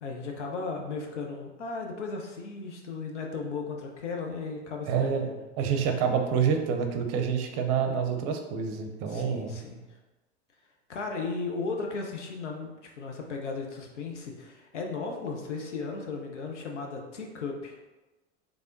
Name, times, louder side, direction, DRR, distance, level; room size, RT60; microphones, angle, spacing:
voice 1, 0.0-5.4 9.1-9.8 10.9-17.8, left 4 dB, 80° left, 1 dB, 0.7 m, -36 dB
voice 2, 4.9-5.2 5.6-9.6, right 7 dB, 45° right, 5 dB, 0.6 m, -27 dB
3.4 x 3.3 x 2.6 m, 1.1 s
figure-of-eight pair, 80°, 35 cm